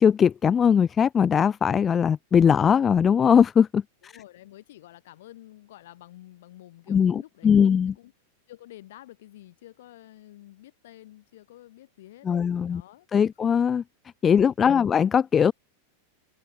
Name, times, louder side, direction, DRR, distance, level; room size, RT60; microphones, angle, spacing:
voice 1, 0.0-4.1 6.9-7.9 12.3-12.8 13.1-13.8 14.2-15.5, left 7 dB, 20° left, 0.3 m, -20 dB
voice 2, 4.0-8.1 8.5-13.1 14.3-14.9, left 14 dB, 55° left, 5.1 m, -49 dB
figure-of-eight pair, 90°, 0 cm